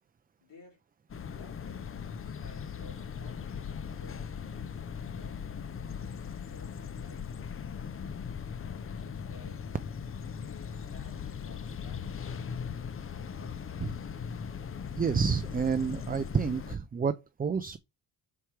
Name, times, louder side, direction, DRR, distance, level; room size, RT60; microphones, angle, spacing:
voice 1, 0.4-0.8 1.2-1.9 2.2-5.8 6.4-7.3 7.6-8.0 8.8-9.6 10.3-12.4 13.1-14.0, left 2 dB, 70° left, 4.0 m, -56 dB
sound 1, 1.1-16.8, left 7 dB, 30° left, 0.7 m, -39 dB
voice 2, 14.9-17.8, right 6 dB, 20° right, 0.4 m, -29 dB
5.9 x 4.6 x 4.6 m
cardioid pair, 90°, 43 cm